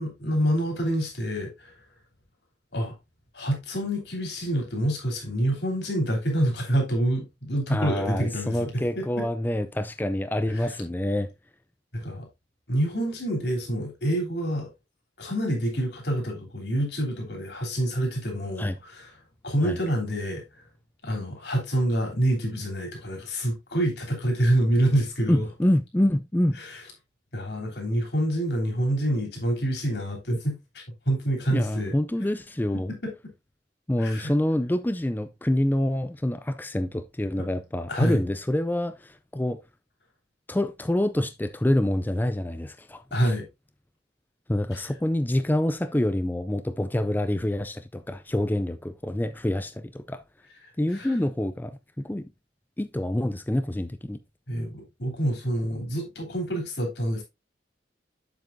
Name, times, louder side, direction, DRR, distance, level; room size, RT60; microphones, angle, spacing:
voice 1, 0.0-1.7 2.7-2.9 3.3-9.2 10.5-10.7 11.9-12.3 12.7-14.7 15.2-19.1 19.4-20.4 21.0-25.5 26.6-26.8 27.3-31.9 32.9-33.1 34.0-34.3 37.9-38.2 43.1-43.5 44.7-44.8 50.9-51.1 54.5-57.2, right 1 dB, 65° left, 3.4 m, -27 dB
voice 2, 7.7-11.3 18.6-18.8 19.6-19.8 25.3-26.6 31.5-32.9 33.9-39.6 40.5-43.3 44.5-50.2 50.8-52.3 52.8-54.2, left 1 dB, 10° left, 0.4 m, -26 dB
7.5 x 7.4 x 2.6 m
head